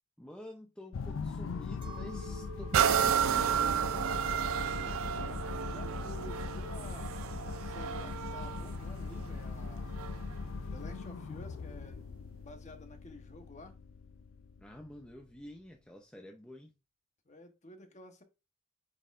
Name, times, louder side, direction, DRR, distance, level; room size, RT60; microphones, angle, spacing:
voice 1, 0.2-3.8 14.6-16.7, left 1 dB, 5° left, 0.6 m, -49 dB
sound 1, 0.9-15.4, left 4 dB, 65° left, 0.4 m, -41 dB
Chink clink, 1.8-7.3, right 3 dB, 25° right, 0.9 m, -53 dB
sound 2, 2.7-10.3 10.9-11.0, right 8 dB, 70° right, 0.4 m, -32 dB
voice 2, 4.7-5.4 5.7-9.9 10.7-12.0 12.4-13.8 17.3-18.2, left 2 dB, 35° left, 1.1 m, -51 dB
8.6 x 4.3 x 2.5 m
head